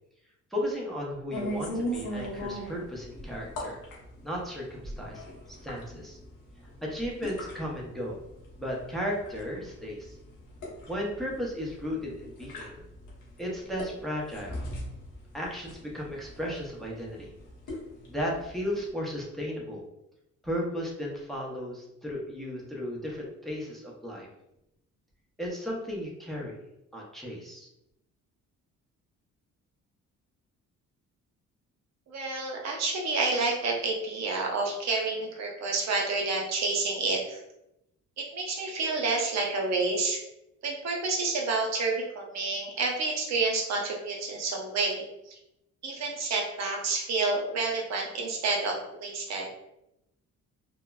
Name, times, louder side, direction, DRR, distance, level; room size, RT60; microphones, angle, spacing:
voice 1, 0.5-3.8 4.2-6.2 6.8-8.2 8.6-10.2 10.9-12.8 13.4-14.6 15.3-17.3 18.1-19.8 20.4-24.3 25.4-26.6 26.9-27.7, equal, ahead, -3 dB, 0.6 m, -35 dB
sound 1, 1.3-18.9, equal, 90° left, 0.9 m, -40 dB
voice 2, 32.1-37.4 38.2-40.2 40.6-45.4 45.8-49.5, right 3 dB, 60° right, 0 dB, 0.7 m, -29 dB
3.0 x 2.0 x 2.3 m, 0.86 s
cardioid pair, 90°, 30 cm